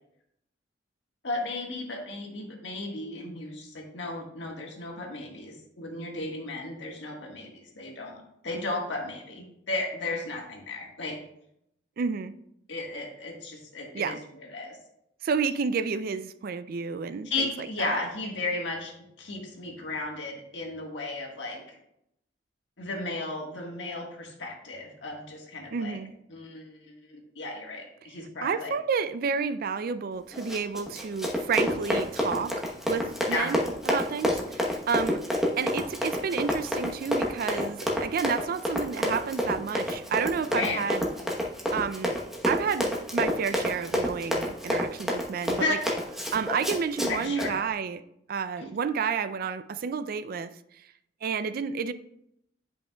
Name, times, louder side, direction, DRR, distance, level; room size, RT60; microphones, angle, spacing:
voice 1, 1.2-11.2 12.7-14.8 17.2-21.8 22.8-26.0 26.3-28.7 33.3-33.5 40.5-40.8 45.6-45.8 47.1-47.5 48.6-48.7, left 2 dB, 80° left, 0 dB, 1.5 m, -34 dB
voice 2, 12.0-12.3 13.9-14.2 15.2-18.0 25.7-26.1 28.4-35.2 35.6-41.1 41.7-42.2 42.5-45.8 46.3-48.0 48.3-50.5 51.2-51.9, right 6 dB, 55° right, 13 dB, 0.4 m, -30 dB
Run, 30.3-47.5, equal, ahead, 1.0 m, -29 dB
10.0 x 5.5 x 2.3 m, 0.76 s
head